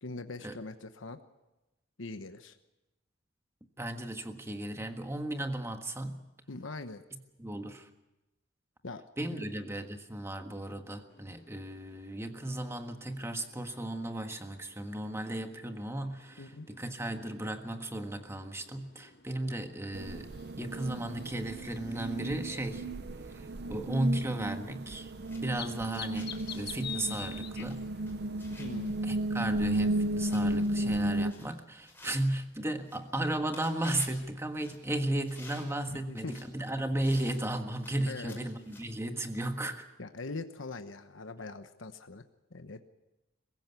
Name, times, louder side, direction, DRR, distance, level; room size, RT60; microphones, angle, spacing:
voice 1, 0.0-1.2 2.0-2.6 6.5-7.0 8.8-9.0 9.4-9.5 16.4-16.7 28.6-29.0 35.9-36.4 38.1-38.4 40.0-42.2 42.5-42.8, left 3 dB, 80° left, 8 dB, 1.1 m, -42 dB
voice 2, 3.8-6.2 7.1-7.9 9.2-22.9 23.3-25.1 25.4-27.8 29.0-39.9, right 1 dB, 15° right, 6 dB, 1.6 m, -35 dB
sound 1, 11.1-29.2, left 8 dB, 55° left, 1.3 m, -51 dB
sound 2, 19.9-31.3, right 1 dB, 55° right, 0.6 m, -34 dB
sound 3, 25.1-39.1, left 2 dB, 10° left, 5.7 m, -55 dB
23.0 x 15.5 x 8.4 m, 0.99 s
head